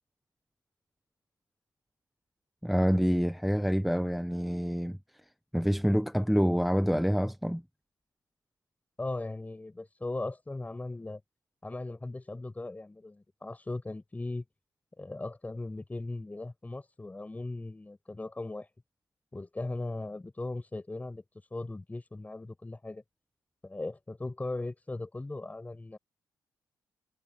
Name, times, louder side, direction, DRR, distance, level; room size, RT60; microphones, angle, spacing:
voice 1, 2.6-5.0 5.5-7.6, equal, ahead, 0.9 m, -27 dB
voice 2, 9.0-11.2 11.6-14.4 15.0-18.7 19.3-21.2 21.5-23.0 23.6-26.0, left 2 dB, 20° left, 5.7 m, -38 dB
cardioid pair, 70°, 8 cm